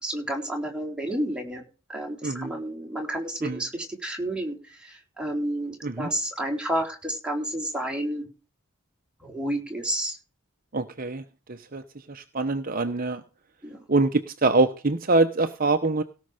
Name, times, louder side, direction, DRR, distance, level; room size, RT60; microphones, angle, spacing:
voice 1, 0.0-1.6 1.9-8.3 9.2-10.2 13.6-13.8, right 1 dB, 5° right, 0 dB, 4.0 m, -30 dB
voice 2, 10.7-11.2 11.5-11.8 12.1-13.2 13.9-16.0, right 3 dB, 40° right, 8 dB, 1.0 m, -24 dB
17.5 x 6.4 x 5.1 m, 0.34 s
head